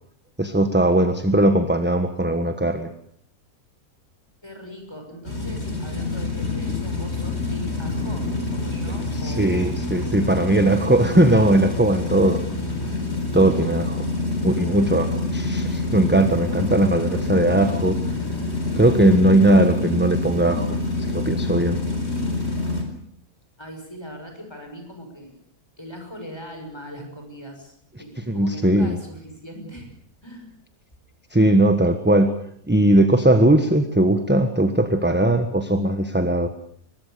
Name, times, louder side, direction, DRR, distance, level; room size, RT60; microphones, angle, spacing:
voice 1, 0.4-2.9 9.2-12.4 13.3-14.0 14.4-18.0 18.8-21.8 28.3-29.0 31.3-32.4 32.7-36.5, right 1 dB, 10° right, 8 dB, 1.2 m, -19 dB
voice 2, 4.4-11.0 23.6-25.4 25.8-29.9 30.2-30.5, equal, 15° left, 4 dB, 6.5 m, -40 dB
sound 1, 5.3-22.8, left 2 dB, 45° left, 4.7 m, -26 dB
23.0 x 21.5 x 6.8 m, 0.63 s
omnidirectional pair, 1.6 m